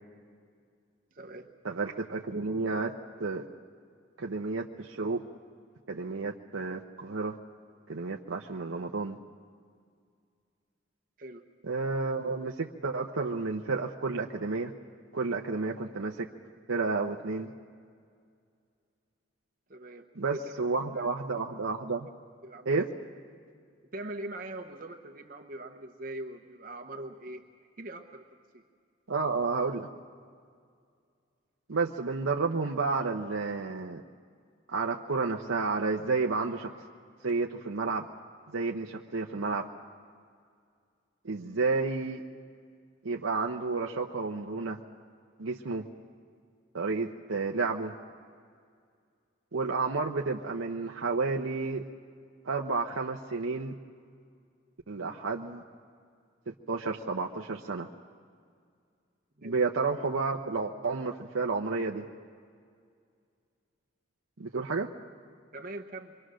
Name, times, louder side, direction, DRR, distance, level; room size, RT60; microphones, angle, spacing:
voice 1, 1.1-1.5 11.2-11.4 19.7-20.0 22.4-22.7 23.9-27.4 27.8-28.2 28.5-28.6 59.4-59.5 65.5-66.1, right 1 dB, 40° right, 4 dB, 1.0 m, -41 dB
voice 2, 1.6-2.9 3.2-3.4 4.2-5.2 5.9-7.4 7.9-9.2 11.6-14.7 15.1-16.3 16.7-17.5 20.1-22.1 22.7-22.9 29.1-29.9 31.7-34.0 34.7-36.7 37.2-38.1 38.5-39.6 41.2-42.2 43.0-44.8 45.4-45.9 46.7-47.9 49.5-51.8 52.4-53.8 54.9-55.6 56.5-57.9 59.4-62.1 64.4-64.9, right 4 dB, 80° right, 1 dB, 0.8 m, -31 dB
26.5 x 23.0 x 6.4 m, 2.2 s
head